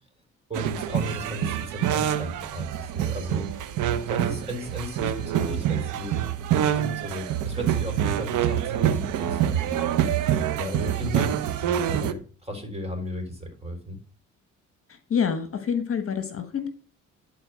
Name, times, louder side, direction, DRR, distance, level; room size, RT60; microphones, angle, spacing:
voice 1, 0.5-3.4 4.1-6.2 6.6-9.8 10.5-14.0, equal, 20° right, 4 dB, 3.9 m, -35 dB
sound 1, 0.5-12.1, right 10 dB, 85° right, 0.9 m, -26 dB
voice 2, 14.9-16.7, left 7 dB, 45° left, 9 dB, 1.3 m, -27 dB
11.5 x 4.2 x 6.0 m, 0.39 s
cardioid pair, 90°, 30 cm